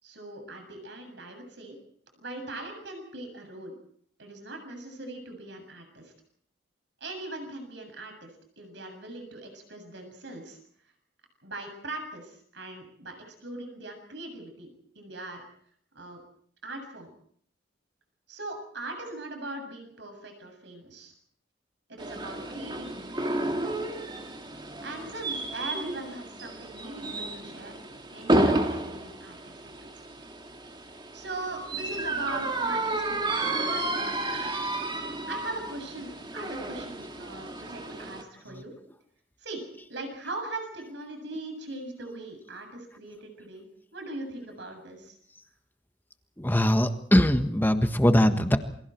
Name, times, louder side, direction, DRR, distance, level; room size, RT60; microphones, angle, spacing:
voice 1, 0.0-1.8 2.2-3.8 4.2-6.1 7.0-8.3 8.6-10.6 11.4-14.7 15.0-15.4 15.9-16.2 16.6-17.1 18.3-21.1 21.9-23.8 24.8-27.7 28.1-29.7 31.1-34.5 35.3-38.7 39.4-39.6 39.9-43.7 43.9-45.2, right 2 dB, 60° right, 5 dB, 7.5 m, -40 dB
sound 1, 22.0-38.2, right 2 dB, 25° right, 2.5 m, -31 dB
voice 2, 46.4-48.6, equal, 10° left, 7 dB, 1.5 m, -22 dB
28.0 x 24.5 x 4.6 m, 0.62 s
head